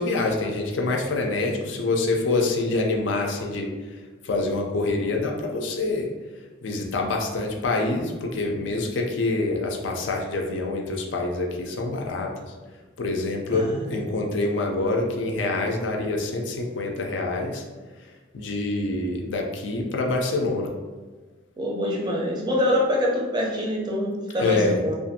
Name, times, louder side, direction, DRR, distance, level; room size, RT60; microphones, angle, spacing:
voice 1, 0.0-3.7 4.2-6.1 6.6-12.3 13.0-17.6 18.3-20.7 24.4-24.8, left 2 dB, 70° left, 1 dB, 0.4 m, -26 dB
voice 2, 13.5-14.0 21.6-25.0, left 1 dB, 20° right, -3 dB, 0.5 m, -25 dB
2.5 x 2.4 x 2.6 m, 1.3 s
head